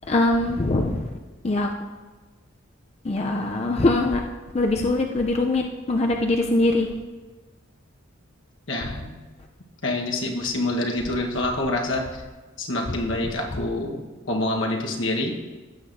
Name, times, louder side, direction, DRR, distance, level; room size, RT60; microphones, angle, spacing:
voice 1, 0.0-1.1 1.4-1.7 3.0-4.3 4.5-6.9, left 2 dB, 30° left, 2 dB, 0.5 m, -22 dB
voice 2, 8.7-9.2 9.8-12.1 12.6-14.0 14.3-15.3, left 2 dB, 70° left, 1 dB, 1.2 m, -26 dB
15.5 x 8.1 x 2.6 m, 1.3 s
head